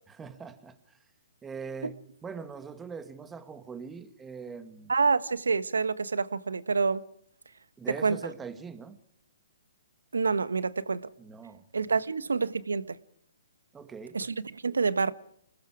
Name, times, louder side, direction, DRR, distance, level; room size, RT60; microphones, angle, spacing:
voice 1, 0.2-1.0 1.4-2.0 2.2-4.9 7.8-9.0 11.2-11.6 13.7-14.2, right 5 dB, 10° right, 2.2 m, -42 dB
voice 2, 4.9-7.0 7.9-8.2 10.1-11.1 11.7-13.0 14.1-15.1, right 4 dB, 85° right, 1.4 m, -27 dB
29.0 x 20.5 x 5.0 m
hypercardioid pair, 135°, 0 cm